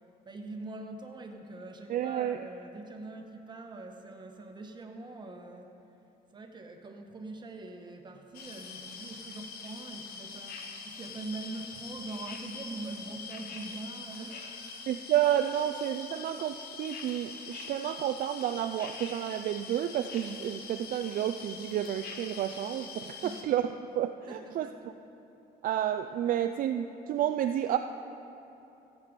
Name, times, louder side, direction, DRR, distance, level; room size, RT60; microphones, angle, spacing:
voice 1, 0.2-5.8 6.3-14.9 23.2-23.4 24.3-24.9 26.2-26.4, right 2 dB, 25° right, 3 dB, 1.2 m, -43 dB
voice 2, 1.9-2.4 14.9-23.6 23.9-24.7 25.6-27.8, right 11 dB, 55° right, 8 dB, 0.4 m, -30 dB
sound 1, 8.3-23.4, left 5 dB, 65° left, 1.2 m, -44 dB
15.5 x 7.6 x 5.2 m, 2.8 s
cardioid pair, 110°, 17 cm